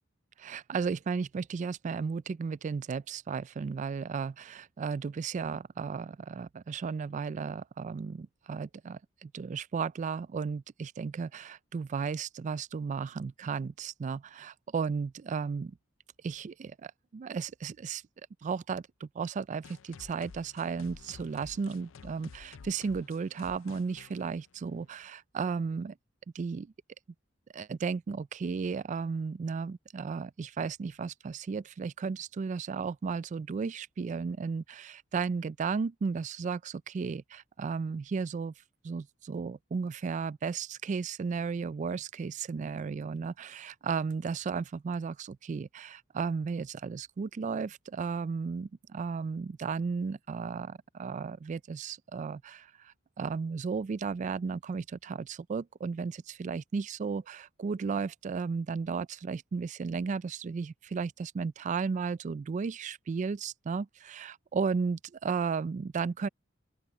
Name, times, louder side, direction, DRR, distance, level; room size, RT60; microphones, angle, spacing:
voice 1, 0.4-15.8 16.2-18.0 18.4-25.9 26.3-26.7 27.5-38.5 38.8-66.3, right 5 dB, 40° right, 0.3 m, -34 dB
sound 1, 19.6-25.1, left 5 dB, 75° left, 0.5 m, -51 dB
open air
head